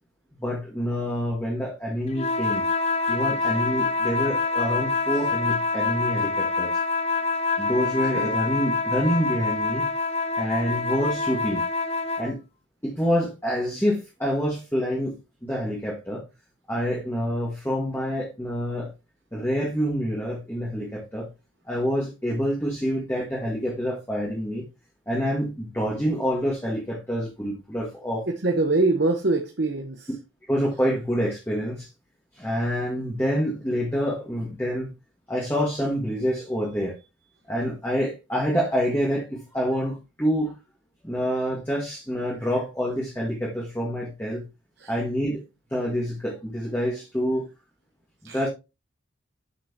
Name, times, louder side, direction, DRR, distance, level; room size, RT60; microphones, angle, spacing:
voice 1, 0.4-2.6 3.1-6.7 7.6-9.9 10.4-11.6 12.2-12.4 12.8-15.2 15.4-16.2 16.7-18.9 19.3-21.3 21.6-24.6 25.1-28.3 30.5-31.9 32.3-34.9 35.3-36.9 37.5-40.5 41.0-44.4 44.9-45.4 45.7-47.5 48.2-48.5, equal, 10° left, 1.7 m, -27 dB
sound 1, 2.1-12.3, left 3 dB, 30° left, 0.6 m, -26 dB
voice 2, 28.3-30.1 44.8-44.9 48.2-48.4, right 2 dB, 55° right, 0.9 m, -24 dB
8.3 x 6.0 x 2.9 m
head